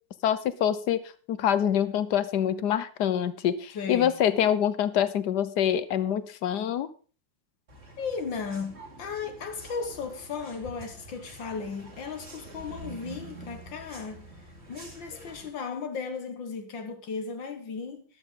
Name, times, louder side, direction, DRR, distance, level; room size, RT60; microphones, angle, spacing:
voice 1, 0.2-1.0 1.3-6.9, left 9 dB, 65° left, 1.4 m, -25 dB
voice 2, 3.7-4.1 8.0-14.3 14.7-18.0, left 5 dB, 85° left, 2.3 m, -35 dB
sound 1, 7.7-15.5, right 2 dB, 35° right, 2.6 m, -46 dB
13.0 x 12.0 x 3.8 m
omnidirectional pair, 2.0 m